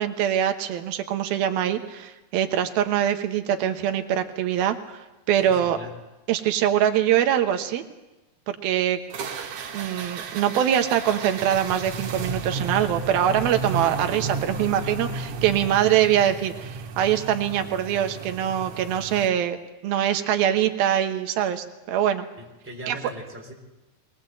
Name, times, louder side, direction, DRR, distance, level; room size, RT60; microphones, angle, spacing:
voice 1, 0.0-5.0 5.3-5.8 6.3-7.8 8.5-9.0 9.7-19.6 19.8-22.2 22.9-23.0, right 10 dB, 90° right, 6 dB, 3.0 m, -23 dB
voice 2, 5.4-5.9 22.4-23.5, right 1 dB, 5° right, -1 dB, 3.4 m, -39 dB
sound 1, 9.1-19.3, right 4 dB, 60° right, 2.8 m, -33 dB
21.5 x 19.0 x 7.7 m, 1.0 s
omnidirectional pair, 4.1 m